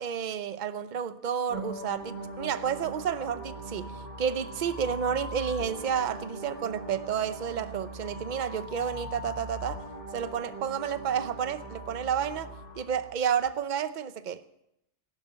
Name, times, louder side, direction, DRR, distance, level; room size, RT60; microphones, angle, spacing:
voice 1, 0.0-9.8 10.1-12.5 12.8-14.4, right 8 dB, 45° right, 0.8 m, -31 dB
sound 1, 1.5-13.5, right 1 dB, 40° left, 3.6 m, -41 dB
16.5 x 11.5 x 7.5 m
omnidirectional pair, 1.2 m